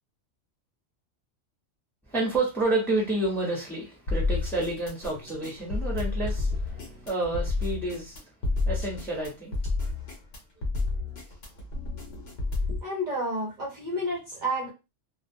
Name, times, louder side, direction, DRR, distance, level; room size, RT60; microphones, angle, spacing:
voice 1, 2.1-8.2 8.7-9.5 12.4-12.5, right 2 dB, ahead, -3 dB, 0.7 m, -29 dB
sound 1, 4.1-12.8, left 3 dB, 55° left, 1.0 m, -30 dB
voice 2, 11.9-12.3 12.7-14.7, equal, 45° right, -5 dB, 0.6 m, -31 dB
2.3 x 2.2 x 2.6 m, 0.28 s
omnidirectional pair, 1.3 m